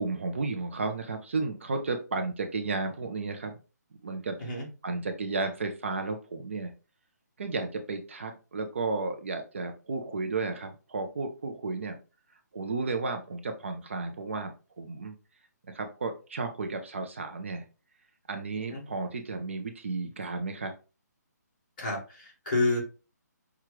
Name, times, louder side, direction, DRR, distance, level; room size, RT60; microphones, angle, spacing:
voice 1, 0.0-3.5 4.0-4.5 4.8-6.7 7.4-12.0 12.5-15.1 15.7-17.6 18.3-20.7, right 3 dB, 45° right, 5 dB, 0.6 m, -33 dB
voice 2, 21.8-22.8, left 2 dB, 30° left, -3 dB, 1.7 m, -29 dB
6.0 x 2.3 x 3.1 m, 0.33 s
hypercardioid pair, 175°, 10 cm